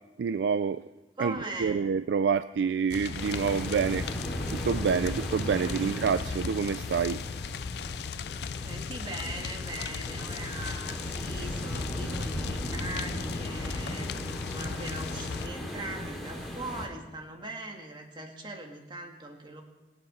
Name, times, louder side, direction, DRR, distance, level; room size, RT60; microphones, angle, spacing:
voice 1, 0.2-0.8 1.2-1.3 1.6-4.1 4.5-7.2, right 6 dB, 80° right, 13 dB, 0.3 m, -27 dB
voice 2, 1.2-1.9 5.8-5.9 8.6-14.1 14.5-19.6, right 2 dB, 25° right, 2 dB, 1.7 m, -40 dB
sound 1, 2.9-15.5, left 6 dB, 65° left, 0.4 m, -37 dB
sound 2, 3.1-16.9, equal, ahead, 2.4 m, -37 dB
22.0 x 8.0 x 4.3 m, 1.1 s
head